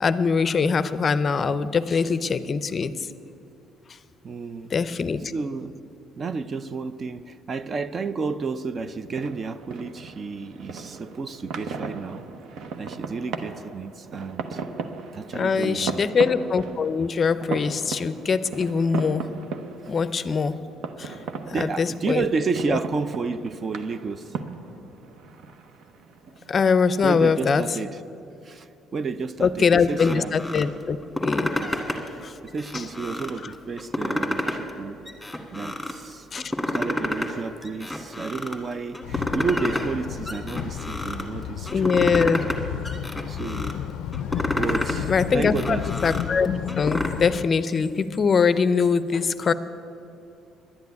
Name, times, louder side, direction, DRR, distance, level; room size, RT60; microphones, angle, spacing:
voice 1, 0.0-2.9 4.7-5.2 15.3-19.3 19.9-20.6 21.0-21.1 21.5-22.2 22.7-22.8 26.5-27.6 29.4-31.5 32.2-32.3 32.7-32.8 36.3-36.5 41.7-42.4 45.1-49.5, left 5 dB, 35° left, 0.5 m, -23 dB
voice 2, 4.2-4.8 5.3-5.7 6.2-12.3 12.8-14.6 15.1-16.1 21.4-24.4 27.0-28.0 28.4-30.3 31.5-31.8 32.4-35.1 35.5-36.3 36.7-42.3 43.3-43.8 44.6-45.9, right 4 dB, 35° right, 0.4 m, -31 dB
sound 1, 8.7-28.0, right 4 dB, 70° right, 0.9 m, -37 dB
sound 2, 29.9-30.7 31.0-32.1 32.5-33.4 33.8-34.7 35.1-36.0 36.4-37.3 37.6-38.6 38.9-39.9 40.3-41.2 41.7-42.6 42.8-43.7 44.1-45.0 45.4-47.1, left 1 dB, 5° left, 1.6 m, -29 dB
sound 3, 39.0-47.4, left 10 dB, 90° left, 0.4 m, -32 dB
11.5 x 9.3 x 9.5 m
cardioid pair, 125°, 0 cm